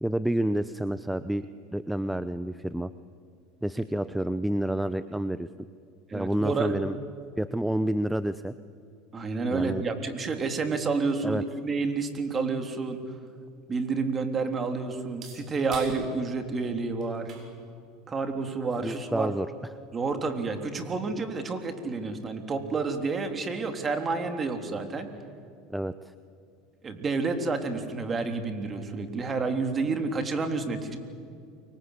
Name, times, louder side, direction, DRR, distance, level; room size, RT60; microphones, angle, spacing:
voice 1, 0.0-1.5 1.7-2.9 3.6-5.5 6.1-7.0 7.4-8.5 9.5-9.9 11.2-11.4 18.8-19.5 25.7-26.1, right 1 dB, 5° right, 13 dB, 0.7 m, -29 dB
voice 2, 6.1-6.8 9.1-13.0 13.7-17.3 18.1-19.3 19.9-25.1 26.8-31.0, right 4 dB, 25° right, 6 dB, 3.4 m, -29 dB
sound 1, 13.3-20.7, right 5 dB, 45° right, 7.4 m, -51 dB
30.0 x 23.5 x 8.3 m, 2.4 s
supercardioid pair, 110°, 0 cm